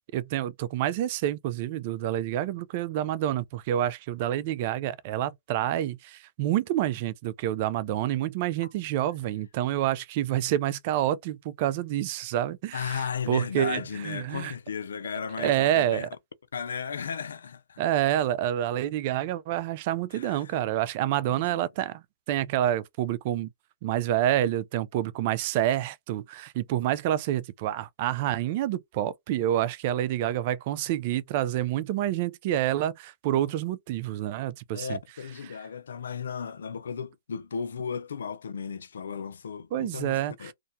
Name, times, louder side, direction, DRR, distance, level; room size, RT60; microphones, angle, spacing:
voice 1, 0.1-14.5 15.4-16.1 17.8-23.5 23.8-35.0 39.7-40.5, right 12 dB, 40° right, 0.3 m, -28 dB
voice 2, 12.7-16.1 16.5-17.8 20.1-20.6 21.2-21.6 34.7-40.5, left 6 dB, 75° left, 0.4 m, -35 dB
2.2 x 2.1 x 2.6 m
hypercardioid pair, 140°, 0 cm